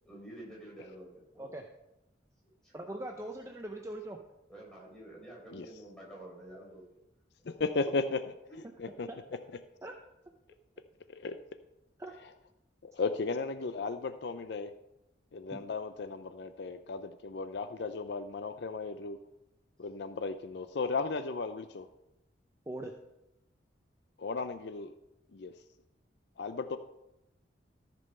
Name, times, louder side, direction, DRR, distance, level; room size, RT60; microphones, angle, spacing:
voice 1, 0.0-1.5 2.6-2.8 4.5-7.0 8.5-8.6, right 1 dB, 5° left, -4 dB, 4.0 m, -49 dB
voice 2, 2.7-4.2 9.1-9.2 9.8-9.9 12.0-12.1 15.5-15.7 22.7-22.9, right 1 dB, 15° right, 3 dB, 0.6 m, -41 dB
voice 3, 7.5-8.2 8.8-9.1 11.1-11.4 12.8-14.7 15.3-19.2 19.8-21.9 24.2-25.0 25.3-25.5 26.4-26.8, left 4 dB, 65° left, 11 dB, 0.5 m, -35 dB
14.0 x 5.4 x 5.5 m, 0.91 s
head